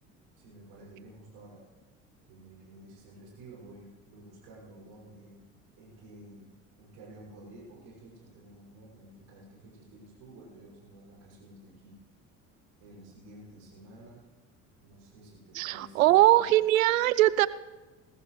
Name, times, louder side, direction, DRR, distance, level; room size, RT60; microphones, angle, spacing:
voice 1, 0.4-1.6 2.3-5.5 5.8-6.5 6.8-12.0 12.8-14.2 14.8-16.6, right 1 dB, 65° right, -4 dB, 6.2 m, -51 dB
voice 2, 15.5-17.5, right 15 dB, 80° right, 18 dB, 0.5 m, -21 dB
21.0 x 14.5 x 3.2 m, 1.2 s
hypercardioid pair, 60°, 40 cm